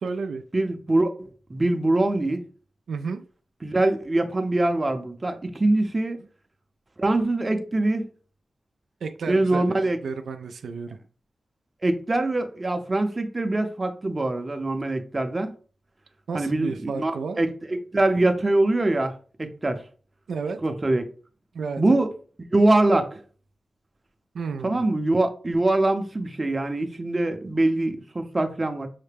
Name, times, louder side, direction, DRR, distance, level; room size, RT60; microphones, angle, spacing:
voice 1, 0.0-0.4 2.9-3.2 9.0-11.0 16.3-17.4 20.3-20.6 21.5-22.0 24.3-24.8, right 5 dB, 85° right, 0.3 m, -32 dB
voice 2, 0.5-2.5 3.6-6.2 7.0-8.0 9.3-10.0 11.8-15.5 16.3-19.8 20.6-21.0 21.8-22.1 22.5-23.2 24.6-28.9, right 2 dB, 25° right, 0.6 m, -23 dB
5.6 x 2.1 x 3.3 m
wide cardioid pair, 95°, 0 cm